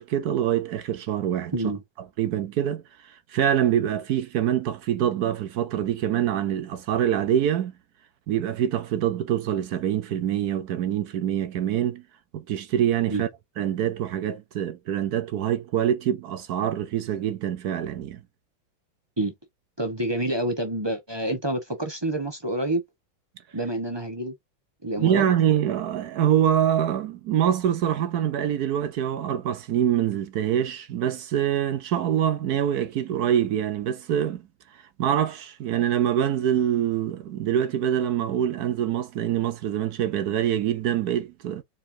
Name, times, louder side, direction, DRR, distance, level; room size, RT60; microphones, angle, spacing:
voice 1, 0.0-1.5 2.2-7.7 8.3-12.0 12.3-13.3 13.6-18.2 25.0-34.4 34.7-41.6, right 10 dB, 65° right, 1.0 m, -25 dB
voice 2, 1.5-1.8 13.1-13.2 19.2-19.3 19.8-22.8 23.5-24.3 24.8-25.2, right 1 dB, 15° right, 0.9 m, -28 dB
4.5 x 4.2 x 2.7 m
omnidirectional pair, 2.1 m